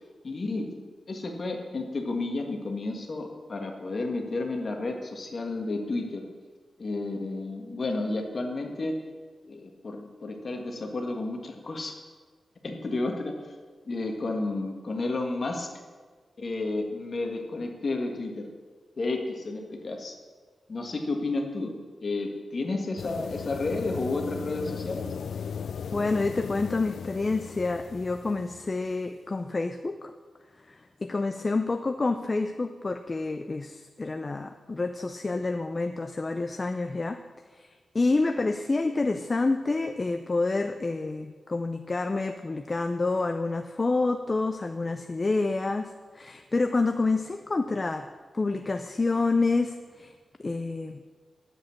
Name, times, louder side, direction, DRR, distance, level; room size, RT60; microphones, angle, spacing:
voice 1, 0.2-0.7 1.1-6.3 6.8-9.0 9.4-12.0 12.6-13.3 13.9-15.7 16.4-18.5 19.0-20.1 20.7-25.1, left 2 dB, 45° left, 2 dB, 1.7 m, -31 dB
sound 1, 23.0-28.9, left 6 dB, 90° left, 0.4 m, -37 dB
voice 2, 25.9-30.1 30.7-37.2 37.5-37.7 37.9-48.1 48.3-50.1 50.4-51.0, left 3 dB, 30° left, 7 dB, 0.5 m, -28 dB
10.5 x 7.7 x 7.2 m, 1.4 s
wide cardioid pair, 155°, 0 cm